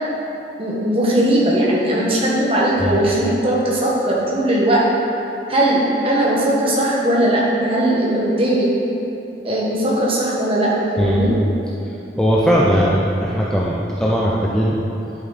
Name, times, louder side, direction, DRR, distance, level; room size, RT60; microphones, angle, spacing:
voice 1, 0.6-4.9 5.5-8.7 9.4-11.4, right 1 dB, 30° right, -5 dB, 1.6 m, -18 dB
voice 2, 11.0-11.3 12.2-14.8, equal, 5° left, -5 dB, 0.6 m, -18 dB
11.0 x 6.5 x 4.2 m, 2.9 s
head